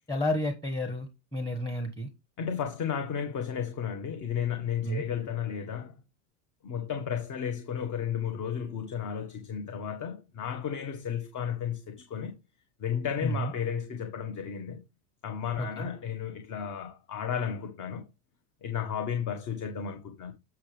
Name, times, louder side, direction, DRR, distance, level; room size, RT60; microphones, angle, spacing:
voice 1, 0.1-2.1 4.8-5.0 13.2-13.5 15.6-15.9, equal, 10° left, 1.3 m, -31 dB
voice 2, 2.4-5.9 6.6-12.4 12.8-14.8 15.2-18.0 18.6-20.3, left 8 dB, 40° left, 1.7 m, -33 dB
8.6 x 6.0 x 3.4 m
supercardioid pair, 110°, 45 cm